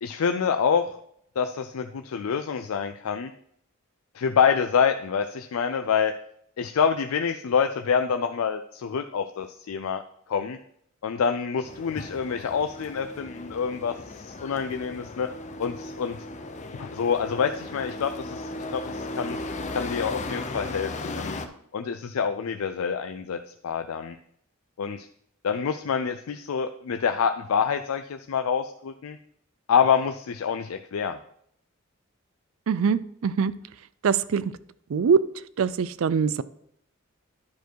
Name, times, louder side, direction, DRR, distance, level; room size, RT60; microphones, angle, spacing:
voice 1, 0.0-1.0 1.4-3.3 4.1-6.1 6.6-10.0 10.3-10.6 11.0-15.3 15.6-16.2 16.7-19.4 19.7-21.4 21.7-24.1 24.8-25.1 25.4-29.2 29.7-31.2, left 6 dB, 90° left, 8 dB, 0.4 m, -26 dB
sound 1, 11.7-21.5, left 2 dB, 35° left, 0.7 m, -36 dB
voice 2, 32.7-33.5 34.0-34.4 34.9-35.2 35.6-36.4, right 6 dB, 70° right, 17 dB, 0.4 m, -23 dB
10.5 x 4.6 x 4.6 m, 0.70 s
head